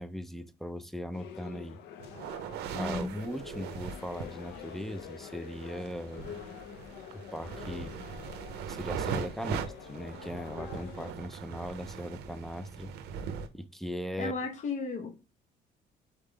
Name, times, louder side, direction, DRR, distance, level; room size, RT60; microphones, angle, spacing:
voice 1, 0.0-1.8 2.7-6.4 7.1-8.0 8.7-12.9 13.5-14.3, equal, ahead, 0.4 m, -39 dB
sound 1, 1.1-11.1, left 9 dB, 85° left, 0.6 m, -46 dB
sound 2, 2.0-13.5, right 7 dB, 75° right, 0.6 m, -40 dB
voice 2, 2.7-3.2 14.2-15.1, left 3 dB, 45° left, 1.0 m, -34 dB
4.1 x 3.5 x 3.3 m
cardioid pair, 110°, 17 cm